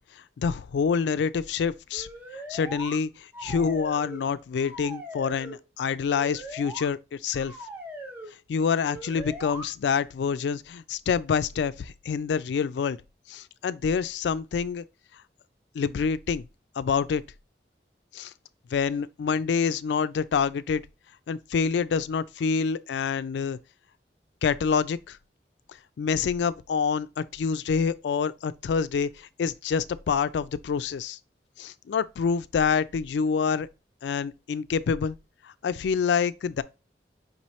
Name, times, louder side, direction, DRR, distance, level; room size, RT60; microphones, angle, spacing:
voice 1, 0.4-2.1 2.5-7.5 8.5-13.0 13.3-14.8 15.7-16.5 16.8-17.2 18.1-18.3 18.7-20.8 21.3-23.6 24.4-25.2 26.0-31.2 31.6-33.7 34.0-35.2 35.4-36.6, left 6 dB, 75° left, 0.3 m, -27 dB
sound 1, 1.9-3.0 3.3-4.3 4.5-5.6 6.1-6.9 7.3-8.3 8.9-9.7, right 1 dB, 10° right, 0.7 m, -40 dB
5.3 x 2.9 x 3.0 m
head